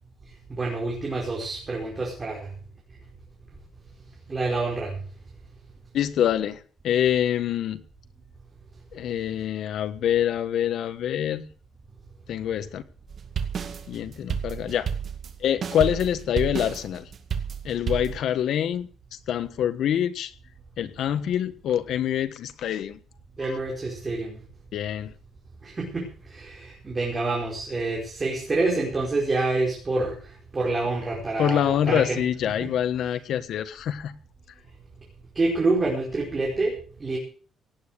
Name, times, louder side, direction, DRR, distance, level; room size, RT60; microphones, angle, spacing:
voice 1, 0.5-2.4 4.3-5.0 23.4-24.4 25.6-30.2 30.5-32.2 32.6-32.7 35.3-37.2, right 3 dB, 25° right, -2 dB, 5.0 m, -27 dB
voice 2, 5.9-7.8 8.9-11.4 12.3-12.8 13.9-14.9 15.4-17.1 17.6-18.9 19.3-20.3 20.8-23.0 24.7-25.1 31.4-34.1, left 10 dB, 70° left, 11 dB, 1.3 m, -25 dB
sound 1, 13.1-18.2, right 7 dB, 45° right, 2.1 m, -31 dB
17.5 x 8.9 x 6.6 m, 0.42 s
cardioid pair, 130°, 0 cm